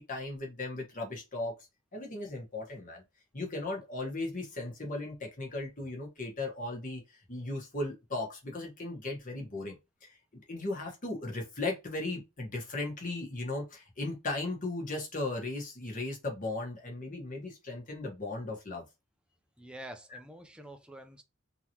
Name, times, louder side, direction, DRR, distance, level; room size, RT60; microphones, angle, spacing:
voice 1, 0.0-1.5 1.9-3.0 3.3-10.2 10.5-18.8 20.1-20.2, left 2 dB, 40° left, 1.4 m, -37 dB
voice 2, 19.6-21.2, right 1 dB, 5° right, 0.5 m, -47 dB
3.7 x 3.0 x 2.8 m
head